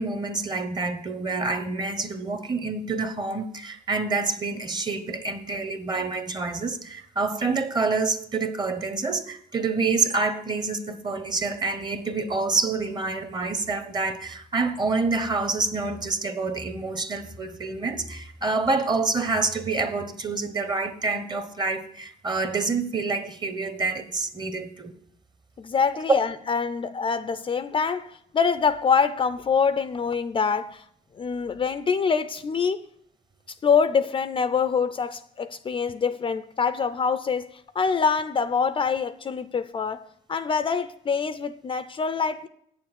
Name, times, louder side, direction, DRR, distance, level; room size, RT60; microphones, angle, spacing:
voice 1, 0.0-24.9, right 3 dB, 25° right, 1.1 m, -27 dB
voice 2, 25.6-30.8 31.2-32.8 33.6-40.0 40.3-42.5, left 6 dB, 30° left, 0.5 m, -25 dB
8.6 x 7.1 x 8.0 m
cardioid pair, 110°, 17 cm